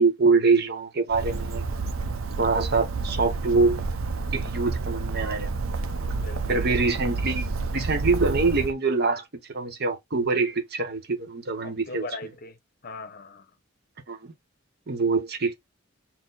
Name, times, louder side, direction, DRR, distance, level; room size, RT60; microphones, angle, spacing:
voice 1, 0.0-1.6 2.4-3.8 4.3-5.5 6.5-7.5 7.7-9.2 9.5-12.0 14.1-14.3 14.9-15.6, right 4 dB, 55° right, 1.0 m, -24 dB
Bird, 1.1-8.7, right 3 dB, 85° right, 0.6 m, -29 dB
voice 2, 6.1-6.7 11.6-12.6 12.8-13.5, left 2 dB, 45° left, 0.8 m, -39 dB
4.3 x 2.1 x 3.8 m
head